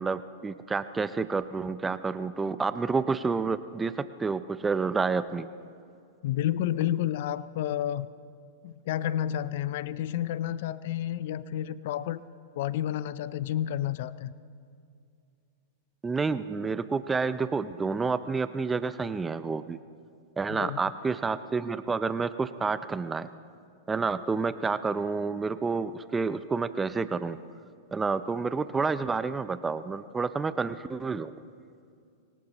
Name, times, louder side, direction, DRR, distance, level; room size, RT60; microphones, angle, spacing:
voice 1, 0.0-5.5 16.0-19.8 20.4-23.3 23.9-27.4 27.9-31.3, right 4 dB, 10° right, 13 dB, 0.5 m, -29 dB
voice 2, 6.2-8.1 8.6-12.2 12.5-14.3 20.5-20.8, left 11 dB, 60° left, 16 dB, 0.4 m, -30 dB
25.0 x 18.5 x 3.0 m, 2.4 s
hypercardioid pair, 135°, 0 cm